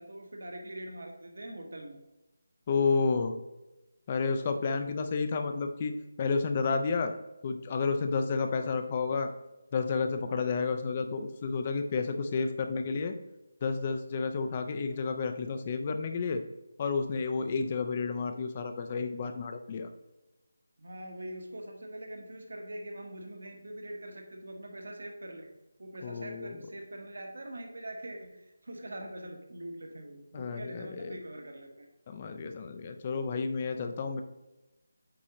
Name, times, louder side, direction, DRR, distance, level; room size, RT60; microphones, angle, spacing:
voice 1, 0.0-2.0 20.8-25.5 25.8-31.9, right 1 dB, 70° right, 3 dB, 1.3 m, -43 dB
voice 2, 2.7-3.4 4.1-7.1 7.4-9.3 9.7-13.1 13.6-16.4 16.8-19.9 26.0-26.6 30.3-31.2 32.1-34.2, left 4 dB, 20° left, 7 dB, 0.4 m, -31 dB
8.4 x 3.7 x 3.0 m, 0.99 s
figure-of-eight pair, 175°, 0 cm